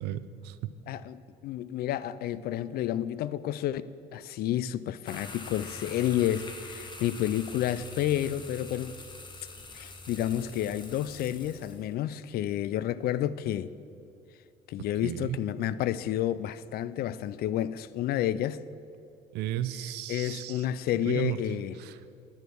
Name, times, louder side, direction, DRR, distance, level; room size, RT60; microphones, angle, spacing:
voice 1, 0.0-0.7 15.0-15.4 19.3-20.7 20.9-21.4 21.8-22.0, right 12 dB, 80° right, 0.5 m, -34 dB
voice 2, 0.9-3.8 4.1-8.9 9.7-13.7 14.7-18.6 20.1-21.8, left 12 dB, 65° left, 0.4 m, -30 dB
sound 1, 5.1-11.9, left 3 dB, 25° left, 1.2 m, -44 dB
10.0 x 5.4 x 7.6 m
cardioid pair, 110°, 17 cm